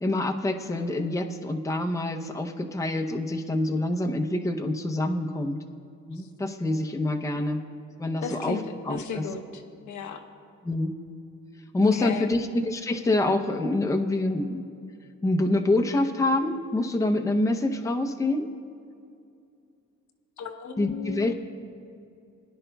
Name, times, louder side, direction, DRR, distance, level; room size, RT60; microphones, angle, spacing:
voice 1, 0.0-5.6 6.1-7.6 8.0-9.3 10.6-10.9 11.7-14.6 15.2-18.5 20.8-21.3, left 2 dB, 10° left, 4 dB, 0.7 m, -26 dB
voice 2, 8.2-9.6 9.9-10.2 11.9-12.3 20.4-21.3, left 6 dB, 75° left, 5 dB, 0.9 m, -35 dB
19.5 x 10.5 x 2.3 m, 2.5 s
cardioid pair, 90°, 30 cm